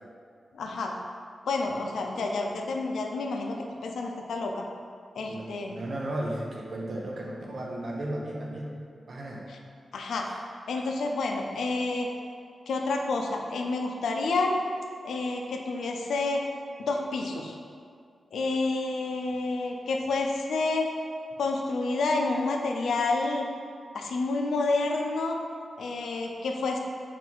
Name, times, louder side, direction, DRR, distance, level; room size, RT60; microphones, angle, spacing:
voice 1, 0.5-0.9 1.5-3.6 3.8-4.6 5.2-5.8 9.5-9.6 9.9-10.3 10.7-12.1 12.7-14.6 15.0-16.4 16.8-17.6 18.3-20.9 21.4-23.4 23.9-25.4 25.8-26.8, left 3 dB, 90° left, 2 dB, 0.4 m, -29 dB
voice 2, 5.2-8.7 9.1-9.5 10.3-10.4, right 1 dB, 65° right, -2 dB, 0.7 m, -35 dB
4.2 x 2.3 x 4.4 m, 2.2 s
cardioid pair, 50°, 0 cm